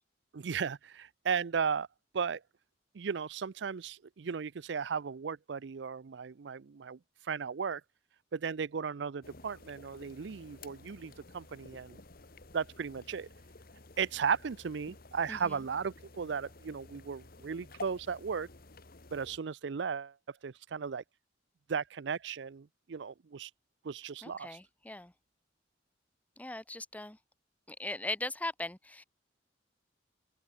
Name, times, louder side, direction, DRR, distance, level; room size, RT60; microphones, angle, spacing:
voice 1, 0.3-1.9 2.1-2.4 2.9-7.0 7.2-7.8 8.3-12.0 12.5-13.3 14.0-18.5 19.1-21.0 21.7-23.5 23.8-24.6, right 6 dB, 65° right, 0.5 m, -36 dB
sound 1, 9.2-19.4, left 3 dB, 55° left, 1.8 m, -53 dB
voice 2, 15.3-15.6 24.2-25.1 26.4-27.2 27.7-29.0, left 2 dB, 10° left, 0.7 m, -39 dB
open air
head